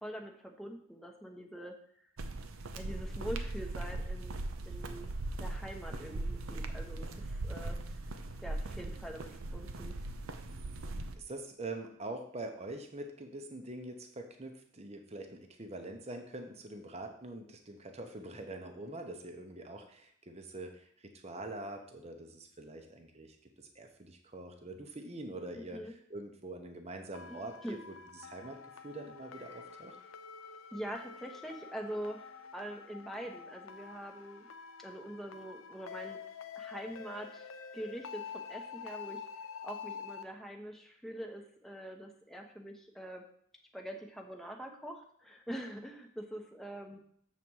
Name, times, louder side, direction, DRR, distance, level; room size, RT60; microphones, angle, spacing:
voice 1, 0.0-1.7 2.7-4.4 4.7-5.1 5.4-7.8 8.4-10.0 25.5-25.9 27.3-27.8 29.5-29.6 30.7-34.5 34.8-36.2 36.6-39.2 39.6-43.2 43.7-47.0, equal, ahead, 1 dB, 0.9 m, -44 dB
sound 1, 2.2-11.2, right 2 dB, 90° right, 0.7 m, -39 dB
voice 2, 11.1-25.8 26.1-27.9 28.2-30.0, right 2 dB, 30° right, 4 dB, 0.8 m, -44 dB
sound 2, 27.1-40.2, left 6 dB, 75° left, 0.6 m, -47 dB
7.4 x 4.2 x 6.2 m, 0.65 s
head